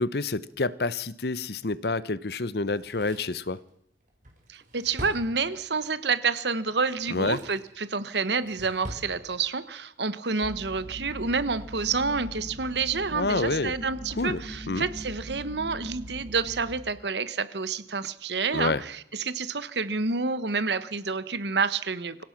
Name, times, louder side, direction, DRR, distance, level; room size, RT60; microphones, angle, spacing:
voice 1, 0.0-3.6 7.1-7.4 13.1-13.7 14.2-14.4 14.7-14.9 18.5-18.8, left 3 dB, 60° left, 18 dB, 0.8 m, -28 dB
Drawer open or close, 2.6-5.9 6.8-7.7 8.1-9.1 9.4-9.5, equal, 45° right, 4.7 m, -44 dB
voice 2, 4.5-22.2, right 4 dB, 75° right, 15 dB, 1.2 m, -29 dB
sound 1, 10.4-16.8, equal, 25° right, 2.2 m, -41 dB
26.0 x 16.5 x 6.0 m, 0.75 s
head